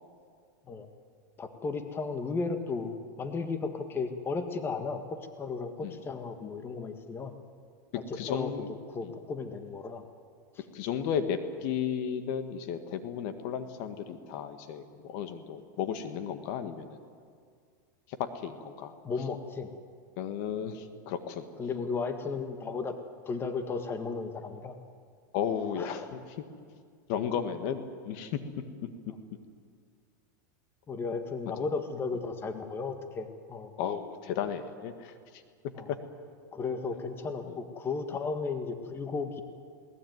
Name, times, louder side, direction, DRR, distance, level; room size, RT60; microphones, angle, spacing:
voice 1, 1.4-7.3 7.9-10.0 10.5-10.6 19.0-19.7 21.6-23.0 23.2-24.7 25.7-26.1 30.9-33.7 35.7-35.9 36.5-39.4, left 4 dB, 20° left, 7 dB, 1.6 m, -35 dB
voice 2, 8.1-8.7 10.7-17.0 18.2-18.9 20.2-21.5 25.3-26.2 27.1-28.4 33.8-35.1 35.9-36.0 37.4-37.6, left 8 dB, 55° left, 9 dB, 1.8 m, -34 dB
21.0 x 18.5 x 9.5 m, 2.1 s
supercardioid pair, 130°, 10 cm